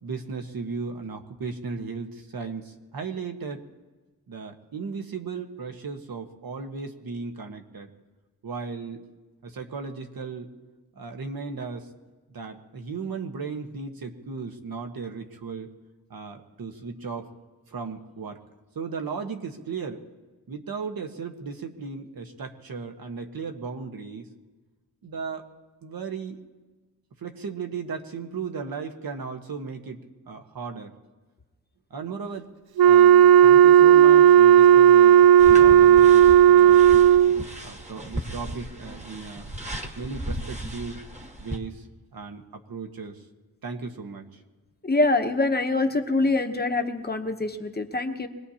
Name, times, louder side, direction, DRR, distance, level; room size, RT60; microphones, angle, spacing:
voice 1, 0.0-3.6 4.3-7.9 8.4-9.1 9.4-10.5 10.9-11.9 12.3-15.7 16.1-17.3 17.7-18.4 18.7-20.0 20.5-24.3 25.0-25.4 25.8-26.4 27.2-30.9 31.9-32.5 32.8-36.9 37.6-39.5 40.0-41.0 41.4-41.9 42.1-43.2 43.6-44.4, right 5 dB, 70° right, 4 dB, 1.3 m, -36 dB
Wind instrument woodwind instrument, 32.8-37.4, right 10 dB, 90° right, 0.5 m, -13 dB
sound 1, 35.4-41.6, right 1 dB, 20° right, 1.3 m, -36 dB
voice 2, 44.8-48.3, left 2 dB, 25° left, 6 dB, 0.9 m, -24 dB
24.5 x 19.5 x 2.9 m, 1.2 s
wide cardioid pair, 150°, 36 cm